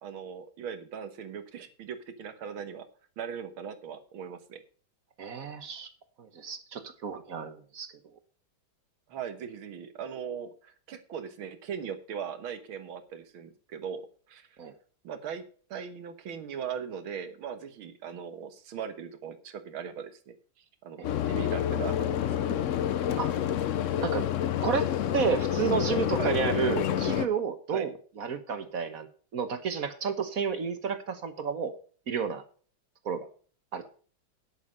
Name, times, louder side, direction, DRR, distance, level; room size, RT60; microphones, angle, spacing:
voice 1, 0.0-2.9 3.2-4.6 9.1-14.6 15.0-15.4 15.7-22.7 26.2-26.4 27.7-27.9, right 7 dB, 85° right, 10 dB, 2.1 m, -39 dB
voice 2, 5.2-5.9 6.2-7.9 14.6-14.7 21.0-21.1 23.2-23.3 24.0-24.3 24.6-27.9 28.2-29.1 29.3-31.7 32.1-32.4 33.0-33.3 33.7-33.8, right 6 dB, 50° right, 11 dB, 1.3 m, -31 dB
sound 1, 21.0-27.3, left 10 dB, 80° left, 0.6 m, -28 dB
10.0 x 8.9 x 5.2 m, 0.42 s
omnidirectional pair, 2.2 m